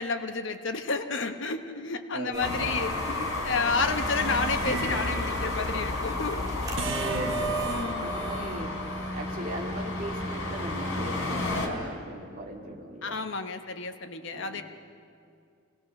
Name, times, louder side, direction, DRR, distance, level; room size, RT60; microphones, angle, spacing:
voice 1, 0.0-6.4 7.7-8.1 13.0-14.6, left 4 dB, 60° left, 7 dB, 1.0 m, -31 dB
voice 2, 2.1-3.0 6.8-13.2 14.3-14.6, right 1 dB, 40° right, 0 dB, 2.3 m, -39 dB
sound 1, 2.3-7.8, right 2 dB, 15° right, 1.2 m, -44 dB
Traffic noise roadway noise, 2.4-11.7, left 2 dB, 85° left, 3.8 m, -31 dB
sound 2, 4.6-5.6 6.8-9.6, right 4 dB, 60° right, 1.2 m, -34 dB
25.5 x 18.5 x 6.5 m, 2.4 s
head